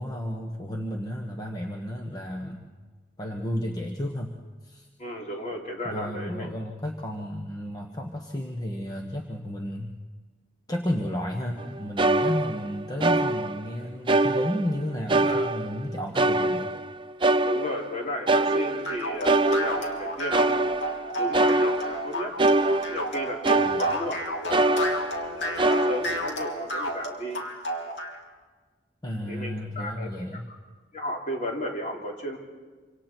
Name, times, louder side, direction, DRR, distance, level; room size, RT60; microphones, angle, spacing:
voice 1, 0.0-2.7 3.2-4.4 4.6-4.9 5.8-10.0 10.7-16.7 23.6-23.8 29.0-30.5, equal, 20° left, 1 dB, 1.3 m, -32 dB
voice 2, 5.0-6.5 15.3-15.5 17.4-20.7 21.2-22.3 22.9-25.0 25.4-27.4 29.3-30.6 30.9-32.4, left 1 dB, 45° left, -1 dB, 3.4 m, -34 dB
sound 1, 11.6-11.7 12.0-13.7 14.1-14.8 15.1-18.0 18.3-24.2 24.5-25.3 25.6-26.3, right 2 dB, 30° right, 0.6 m, -24 dB
sound 2, 18.8-28.2, equal, 80° left, 3.0 m, -31 dB
26.5 x 26.0 x 4.5 m, 1.4 s
head